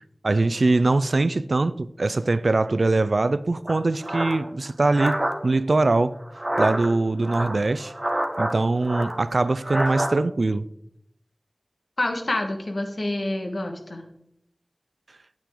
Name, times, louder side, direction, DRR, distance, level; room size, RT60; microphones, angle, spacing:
voice 1, 0.2-5.2 5.4-6.1 6.6-7.9 8.4-10.7, right 2 dB, 70° right, 0.4 m, -22 dB
sound 1, 3.7-5.3 6.2-6.9 7.2-8.5 8.8-10.1, right 1 dB, 25° right, 1.1 m, -27 dB
voice 2, 12.0-14.0, left 1 dB, 65° left, 1.4 m, -27 dB
8.9 x 8.4 x 3.7 m
wide cardioid pair, 60°, 0 cm